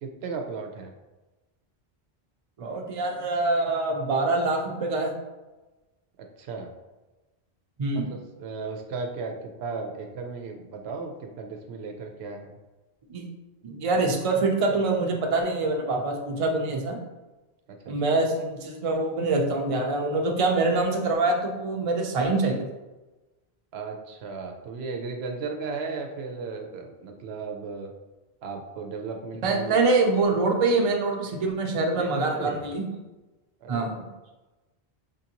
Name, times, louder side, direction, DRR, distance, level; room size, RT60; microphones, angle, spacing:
voice 1, 0.0-0.9 6.4-6.7 7.9-12.5 17.7-17.9 23.7-27.9 28.4-29.8 31.9-32.6 33.6-34.0, right 4 dB, 85° right, 3 dB, 0.8 m, -35 dB
voice 2, 2.6-5.1 7.8-8.1 13.1-13.2 13.6-17.0 17.9-22.6 29.4-32.9 33.7-33.9, right 3 dB, 40° right, 1 dB, 0.5 m, -25 dB
5.1 x 2.5 x 2.8 m, 1.1 s
omnidirectional pair, 1.1 m